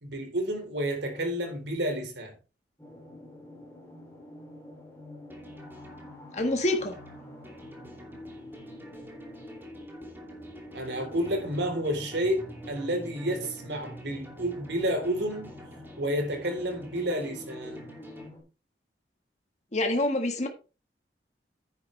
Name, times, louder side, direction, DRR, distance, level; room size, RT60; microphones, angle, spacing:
voice 1, 0.0-2.3 10.7-15.5 16.0-17.9, equal, 85° right, 4.0 m, -30 dB
sound 1, 2.8-18.4, equal, 15° left, 3.5 m, -46 dB
sound 2, 5.3-18.3, equal, 10° right, 2.6 m, -51 dB
voice 2, 6.3-6.9 19.7-20.5, left 1 dB, 40° left, 1.6 m, -26 dB
9.9 x 9.6 x 3.3 m
head